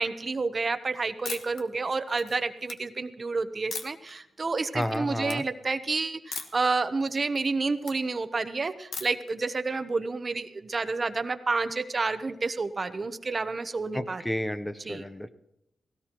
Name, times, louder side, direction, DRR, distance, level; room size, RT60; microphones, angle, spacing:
voice 1, 0.0-14.2 14.8-15.0, right 3 dB, 40° right, 11 dB, 0.9 m, -29 dB
sound 1, 1.2-1.6 2.1-2.7 3.7-4.1 4.6-5.0 5.2-5.4 6.3-6.7 7.0-8.0 8.9-9.3, left 5 dB, 85° left, 1.2 m, -38 dB
voice 2, 4.7-5.4 13.9-15.3, equal, 10° left, 11 dB, 0.7 m, -31 dB
17.5 x 17.5 x 3.0 m, 0.82 s
cardioid pair, 75°, 0 cm